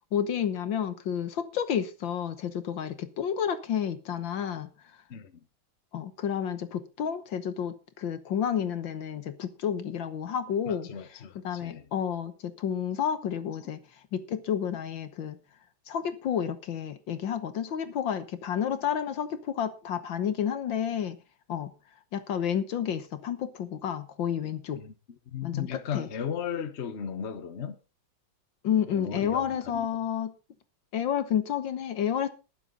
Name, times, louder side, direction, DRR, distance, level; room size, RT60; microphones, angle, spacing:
voice 1, 0.1-4.7 5.9-10.9 11.4-13.8 14.1-15.4 15.9-21.2 21.5-21.7 22.1-24.8 25.4-25.7 25.9-26.1 28.6-30.3 30.9-32.3, left 8 dB, 70° left, 1.8 m, -30 dB
voice 2, 10.7-11.9 24.7-24.9 25.3-27.8 28.9-29.9, left 8 dB, 40° left, 1.2 m, -36 dB
21.5 x 7.4 x 3.8 m
omnidirectional pair, 2.2 m